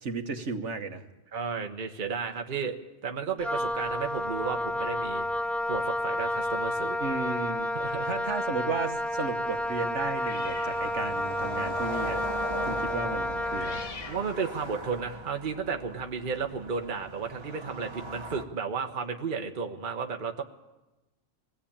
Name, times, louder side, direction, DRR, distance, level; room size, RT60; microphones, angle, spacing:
voice 1, 0.0-1.0 7.0-7.8 8.0-12.2 12.7-13.8, right 4 dB, 60° right, 7 dB, 1.6 m, -34 dB
voice 2, 1.3-5.3 5.7-7.0 7.7-8.1 14.1-20.4, right 5 dB, 40° right, 4 dB, 1.2 m, -33 dB
Wind instrument woodwind instrument, 3.4-14.0, left 1 dB, ahead, 0.5 m, -30 dB
sound 1, 5.5-5.6 5.9-6.0 6.2-18.4, right 1 dB, 20° right, 1.5 m, -42 dB
sound 2, 10.1-11.3 11.7-12.0 13.2-15.0, left 5 dB, 50° left, 1.2 m, -45 dB
24.0 x 17.5 x 8.8 m, 1.1 s
omnidirectional pair, 1.4 m